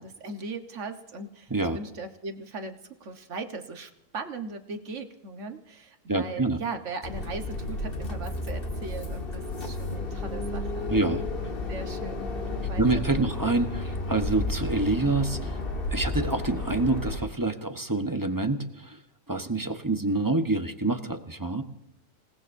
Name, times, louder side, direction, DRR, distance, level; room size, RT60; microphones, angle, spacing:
voice 1, 0.0-11.2 11.7-13.3, right 3 dB, 65° right, 6 dB, 1.6 m, -39 dB
voice 2, 6.1-6.6 10.9-11.5 12.8-15.6 15.9-19.0 19.3-21.6, right 2 dB, 15° right, 6 dB, 1.0 m, -27 dB
sound 1, 7.0-17.2, left 2 dB, 45° left, 1.8 m, -32 dB
27.5 x 18.5 x 2.7 m, 0.85 s
omnidirectional pair, 1.4 m